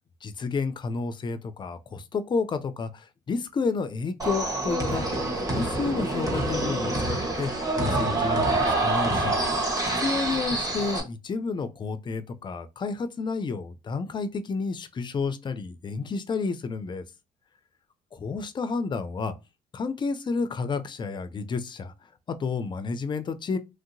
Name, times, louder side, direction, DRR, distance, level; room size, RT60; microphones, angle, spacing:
voice 1, 0.2-5.0 5.3-7.5 7.8-9.7 10.0-17.0 18.1-19.3 19.7-21.9 22.3-23.6, left 4 dB, 25° left, 0.4 m, -30 dB
sound 1, 4.2-11.0, right 2 dB, 20° right, 1.1 m, -26 dB
3.1 x 2.7 x 2.6 m
cardioid pair, 110°, 17 cm